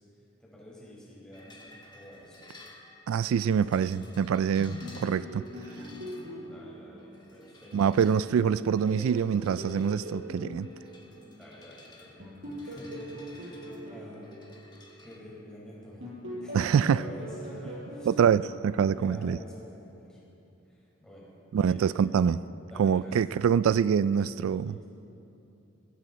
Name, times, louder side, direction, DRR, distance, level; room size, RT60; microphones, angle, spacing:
voice 1, 0.4-2.5 6.3-7.9 11.2-12.3 12.6-14.3 15.0-16.1 16.4-18.1 18.7-20.2 20.7-21.3 21.7-21.9 22.7-23.2 24.4-24.8, equal, 5° left, -7 dB, 4.7 m, -48 dB
sound 1, 1.3-15.2, left 2 dB, 20° left, 1.4 m, -55 dB
voice 2, 3.1-5.5 7.7-10.7 16.5-17.0 18.1-19.4 21.5-22.4 22.8-24.8, right 7 dB, 80° right, 17 dB, 0.3 m, -25 dB
sound 2, 4.6-7.9 8.4-11.6 12.2-15.5 16.0-19.2, equal, 60° right, 4.8 m, -42 dB
20.0 x 16.0 x 4.2 m, 2.8 s
head